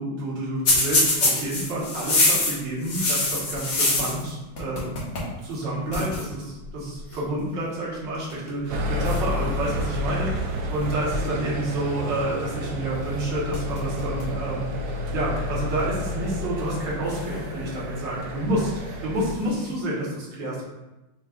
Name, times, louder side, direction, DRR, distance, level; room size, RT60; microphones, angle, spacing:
voice 1, 0.0-4.9 5.4-6.4 6.7-20.6, right 1 dB, 65° right, -5 dB, 1.8 m, -29 dB
sound 1, 0.7-4.3 4.6-5.3 5.6-5.7 5.9-6.2 7.1-7.4 8.1-8.5 9.0-10.1 13.1-13.2 13.5-14.4 14.8-14.9 15.8-15.9 17.0-17.9 19.2-19.7, left 2 dB, 55° left, 1.5 m, -25 dB
sound 2, 8.7-19.3, left 1 dB, 85° right, 0.8 m, -30 dB
7.0 x 2.3 x 2.4 m, 1.0 s
omnidirectional pair, 2.3 m